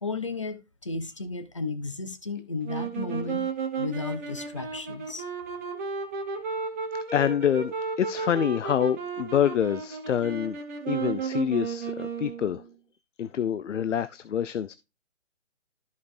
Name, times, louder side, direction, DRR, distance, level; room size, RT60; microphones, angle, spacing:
voice 1, 0.0-3.4 3.8-5.3, left 3 dB, 25° left, 0.5 m, -34 dB
sound 1, 2.6-12.7, right 5 dB, 10° right, 0.9 m, -33 dB
voice 2, 7.1-10.6 10.9-12.6 13.2-14.7, left 9 dB, 70° left, 0.6 m, -26 dB
13.5 x 5.2 x 2.6 m
hypercardioid pair, 165°, 38 cm